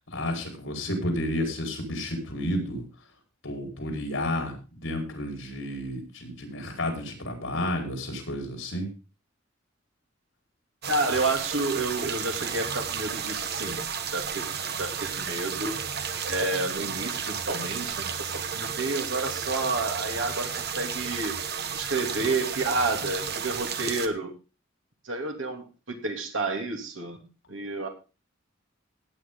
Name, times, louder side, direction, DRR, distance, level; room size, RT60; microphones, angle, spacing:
voice 1, 0.1-2.8 3.4-8.9, left 1 dB, 70° left, 2 dB, 5.0 m, -31 dB
sound 1, 10.8-24.1, right 7 dB, 55° right, 1.2 m, -33 dB
voice 2, 10.8-13.8 14.1-14.5 14.7-15.8 16.2-21.4 21.7-24.3 25.0-27.9, right 3 dB, 80° right, 4 dB, 3.0 m, -30 dB
16.5 x 9.5 x 3.9 m, 0.33 s
head